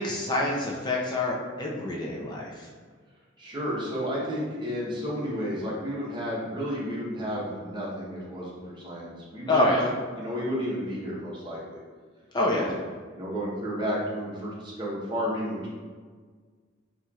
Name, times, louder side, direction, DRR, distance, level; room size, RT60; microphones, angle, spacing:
voice 1, 0.0-2.7 9.5-9.9 12.3-12.8, left 1 dB, 20° left, -3 dB, 0.4 m, -26 dB
voice 2, 3.4-9.8 10.2-11.8 12.5-12.7 13.1-15.7, equal, 25° right, -6 dB, 0.9 m, -32 dB
4.2 x 2.9 x 2.3 m, 1.5 s
head